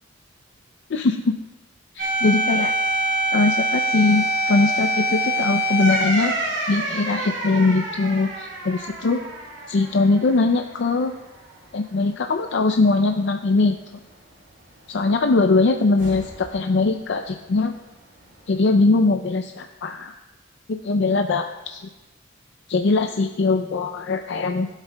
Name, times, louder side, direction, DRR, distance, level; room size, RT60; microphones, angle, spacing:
voice 1, 0.9-1.3 2.0-2.7 3.3-6.3 6.7-9.2 9.7-11.1 11.7-13.8 14.9-17.7 18.5-20.2 20.8-21.8 22.7-24.7, left 3 dB, 60° left, 6 dB, 0.4 m, -21 dB
sound 1, 2.0-10.6 11.0-11.1 16.0-16.5, right 1 dB, 65° right, 3.0 m, -25 dB
16.5 x 8.0 x 2.2 m, 1.1 s
head